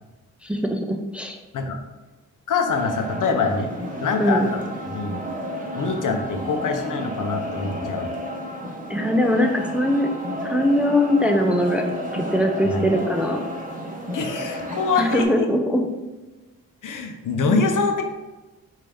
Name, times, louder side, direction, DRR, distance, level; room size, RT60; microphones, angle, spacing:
voice 1, 0.4-1.4 4.2-4.5 8.9-10.1 10.4-11.9 12.1-13.4 15.0-15.9 17.4-17.6, left 1 dB, 5° right, 2 dB, 0.6 m, -21 dB
voice 2, 2.5-3.7 4.0-4.6 4.9-5.3 5.7-8.1 12.6-12.9 14.1-15.5 16.8-18.0, left 4 dB, 55° left, 4 dB, 0.8 m, -24 dB
sound 1, 2.7-15.2, equal, 20° right, 1.1 m, -31 dB
5.2 x 2.8 x 3.5 m, 1.1 s
hypercardioid pair, 45°, 37 cm